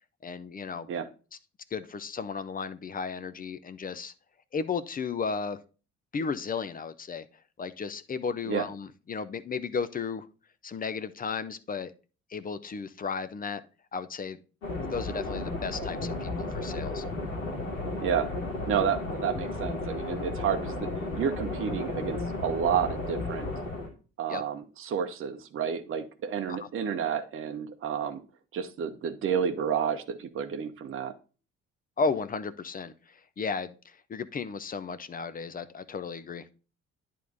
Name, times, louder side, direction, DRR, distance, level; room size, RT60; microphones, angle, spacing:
voice 1, 0.2-0.9 1.7-4.1 4.5-5.6 6.1-7.2 7.6-10.3 10.6-11.9 12.3-13.6 13.9-14.4 14.9-17.0 24.3-24.4 26.5-26.7 32.0-36.4, left 5 dB, 20° left, 13 dB, 0.6 m, -34 dB
sound 1, 14.6-23.9, left 2 dB, 75° left, 1.9 m, -34 dB
voice 2, 18.7-20.9 21.2-23.5 24.2-28.2 28.5-31.1, right 7 dB, 35° right, 6 dB, 0.9 m, -30 dB
10.5 x 3.7 x 3.9 m, 0.35 s
figure-of-eight pair, 50°, 38 cm